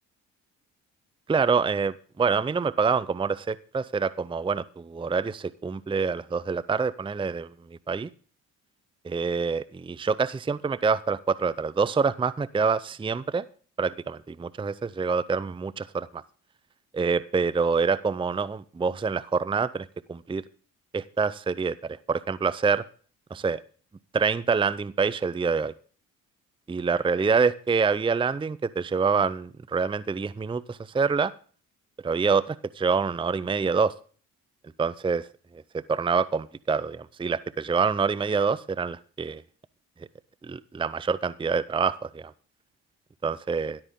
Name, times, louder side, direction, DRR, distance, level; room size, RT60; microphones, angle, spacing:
voice 1, 1.3-7.5 7.9-8.1 9.0-13.4 13.8-16.2 16.9-20.4 20.9-22.8 23.3-23.6 24.1-25.7 26.7-31.3 32.0-33.9 34.8-35.3 35.7-39.4 40.4-42.3 43.2-43.8, right 5 dB, 15° right, 18 dB, 0.6 m, -26 dB
13.0 x 12.0 x 3.8 m, 0.42 s
hypercardioid pair, 55°, 38 cm